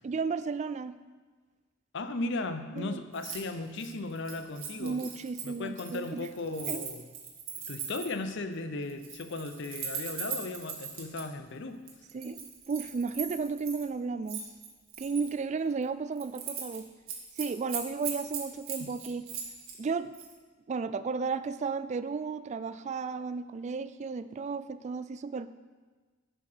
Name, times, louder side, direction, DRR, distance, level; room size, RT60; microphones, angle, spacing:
voice 1, 0.0-1.0 2.8-3.0 4.8-6.3 6.7-6.9 12.1-14.4 15.0-16.9 17.4-19.2 19.8-20.1 20.7-25.5, right 4 dB, 35° right, 13 dB, 0.3 m, -33 dB
voice 2, 1.9-5.0 5.4-7.0 7.7-11.8 18.8-18.9, left 2 dB, 60° left, 9 dB, 0.6 m, -36 dB
Keys jangling, 3.1-3.4 3.7-8.2 8.9-11.2 11.9-13.8 14.3-15.3 15.7-15.9 16.2-16.8 17.1-19.8 20.1-20.3, right 7 dB, 85° right, 1.6 m, -39 dB
11.0 x 4.7 x 5.5 m, 1.4 s
head